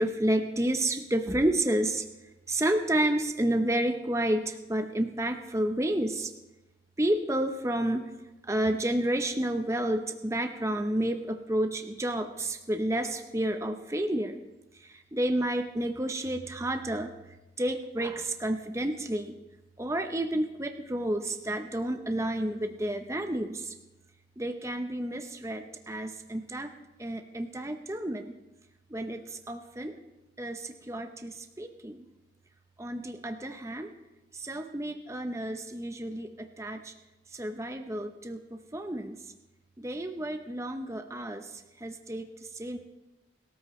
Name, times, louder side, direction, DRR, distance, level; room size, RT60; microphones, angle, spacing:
voice 1, 0.0-2.1 2.5-6.3 7.0-8.1 8.4-14.4 14.7-19.3 19.8-23.7 24.4-26.7 27.0-28.3 28.9-30.0 30.4-32.0 32.8-33.9 34.3-36.9 37.3-39.2 39.8-42.8, right 1 dB, 15° right, 6 dB, 0.7 m, -30 dB
24.5 x 13.5 x 3.2 m, 1.1 s
head